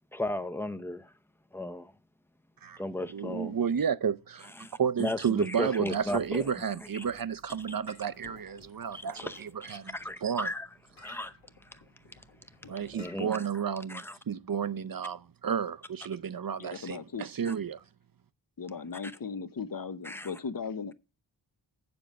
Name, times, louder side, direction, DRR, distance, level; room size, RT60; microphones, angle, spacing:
voice 1, 0.1-1.1 1.5-1.9 2.8-3.5 4.6-6.5 6.9-7.0 8.9-10.7 11.0-11.3 11.7-11.8 12.9-13.4 13.9-14.2 17.5-17.6 19.0-19.1 20.0-20.3, left 1 dB, 5° left, 0.7 m, -36 dB
voice 2, 3.1-4.5 4.8-9.9 10.2-10.5 12.7-17.8, right 7 dB, 50° right, 0.6 m, -32 dB
sound 1, 5.7-13.1, left 3 dB, 90° left, 1.6 m, -57 dB
voice 3, 16.6-17.3 18.6-20.9, left 5 dB, 45° left, 0.8 m, -37 dB
8.8 x 7.0 x 5.2 m
wide cardioid pair, 90°, 46 cm